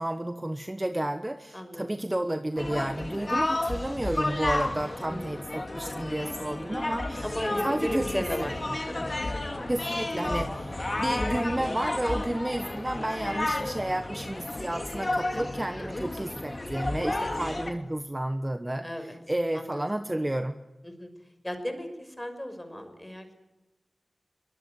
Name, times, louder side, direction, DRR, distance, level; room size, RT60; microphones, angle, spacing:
voice 1, 0.0-7.3 7.6-8.5 9.7-20.6, right 1 dB, 20° right, 9 dB, 1.2 m, -31 dB
voice 2, 1.5-1.8 5.1-5.4 7.2-9.2 9.9-10.0 15.3-15.6 16.0-16.1 18.8-19.1 19.5-19.8 20.8-21.1 21.4-23.3, equal, 15° left, 7 dB, 5.6 m, -35 dB
sound 1, 2.6-17.7, left 2 dB, 40° left, 2.9 m, -32 dB
23.5 x 20.0 x 9.6 m, 1.1 s
wide cardioid pair, 65°, 0 cm